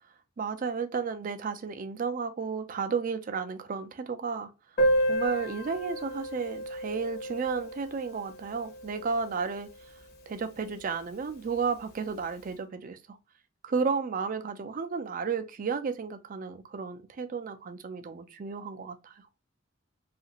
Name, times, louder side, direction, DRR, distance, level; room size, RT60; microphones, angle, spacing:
voice 1, 0.4-4.5 5.0-9.7 10.3-13.2 13.6-19.2, right 5 dB, 45° right, 0.4 m, -33 dB
Piano, 4.8-10.1 10.4-10.5 10.7-10.9 11.2-11.3 12.1-12.2, right 1 dB, 55° left, 0.8 m, -31 dB
2.8 x 2.5 x 2.8 m
head